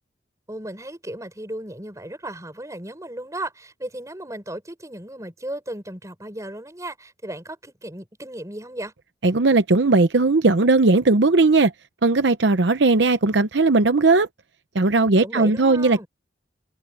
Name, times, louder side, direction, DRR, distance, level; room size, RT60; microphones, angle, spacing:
voice 1, 0.5-8.9 15.2-16.1, right 1 dB, 15° right, 5.9 m, -35 dB
voice 2, 9.2-11.7 12.0-14.3 14.7-16.0, right 3 dB, 70° right, 0.8 m, -18 dB
head